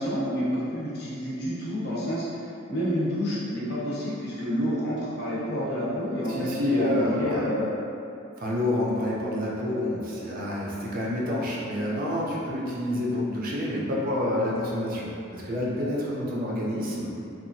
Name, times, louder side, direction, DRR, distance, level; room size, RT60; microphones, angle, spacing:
voice 1, 0.0-2.4 2.7-7.7, equal, 50° left, -8 dB, 0.7 m, -29 dB
voice 2, 6.3-7.5 8.4-17.1, left 1 dB, 45° right, -5 dB, 0.4 m, -28 dB
2.8 x 2.3 x 2.6 m, 2.7 s
head